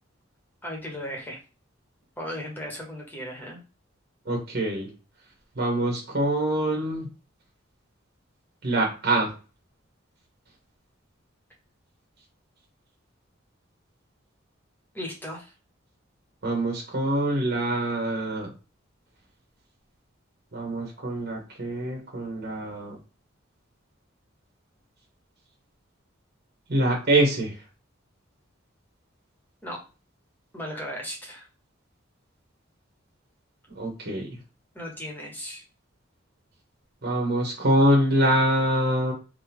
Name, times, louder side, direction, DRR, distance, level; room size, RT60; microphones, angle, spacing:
voice 1, 0.6-1.4 2.2-3.6 14.9-15.5 29.6-29.8 30.5-31.5 34.7-35.6, equal, 10° left, -1 dB, 1.1 m, -36 dB
voice 2, 4.2-4.9 5.5-7.1 8.6-9.4 16.4-18.5 20.5-23.0 26.7-27.6 33.7-34.3 37.0-39.1, right 1 dB, 55° right, 0 dB, 1.1 m, -24 dB
3.3 x 2.8 x 3.5 m, 0.32 s
head